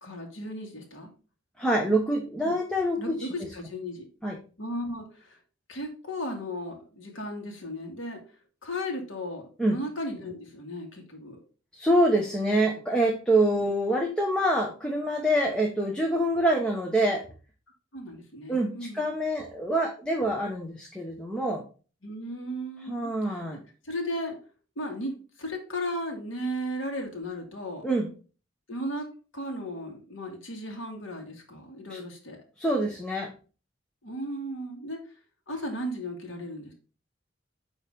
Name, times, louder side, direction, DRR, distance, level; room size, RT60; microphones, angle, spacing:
voice 1, 0.0-1.1 2.4-2.5 3.0-4.0 4.6-5.4 5.7-8.2 8.6-11.4 13.5-13.7 17.9-19.1 22.0-23.5 23.8-24.4 24.8-25.1 25.4-27.9 28.7-29.1 29.3-32.4 34.0-35.0 35.5-36.7, equal, 85° left, 2 dB, 2.1 m, -35 dB
voice 2, 1.6-3.3 4.2-4.4 9.6-9.8 11.7-17.2 18.5-21.6 22.8-23.6 27.8-28.1 31.9-32.0 32.6-33.3, right 1 dB, 5° left, 0 dB, 1.0 m, -26 dB
9.0 x 3.3 x 5.2 m, 0.36 s
head